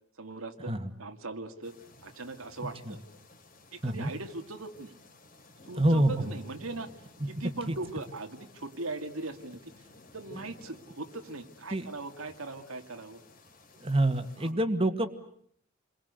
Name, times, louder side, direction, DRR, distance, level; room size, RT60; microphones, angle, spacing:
voice 1, 0.2-1.7 2.0-3.0 3.7-4.9 5.7-6.9 7.3-9.7 10.1-13.2 14.4-14.7, right 2 dB, 90° right, 6 dB, 2.3 m, -40 dB
sound 1, 1.6-14.5, left 2 dB, 40° left, 3.5 m, -55 dB
voice 2, 5.8-6.3 7.7-7.8 11.7-11.9 13.8-15.1, right 1 dB, 25° right, 8 dB, 2.0 m, -27 dB
29.0 x 22.5 x 8.2 m, 0.66 s
head